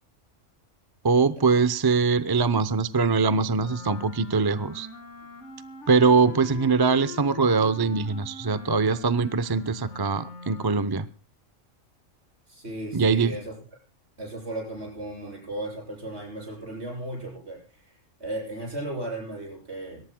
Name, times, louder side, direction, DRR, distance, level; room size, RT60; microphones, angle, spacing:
voice 1, 1.0-4.9 5.9-11.1 12.9-13.4, right 4 dB, 25° right, 14 dB, 0.5 m, -22 dB
Wind instrument woodwind instrument, 3.5-11.0, left 3 dB, 70° left, 2.4 m, -43 dB
voice 2, 12.5-13.6 14.2-20.0, right 1 dB, 60° right, 0 dB, 7.7 m, -35 dB
22.5 x 18.0 x 2.2 m, 0.37 s
omnidirectional pair, 1.3 m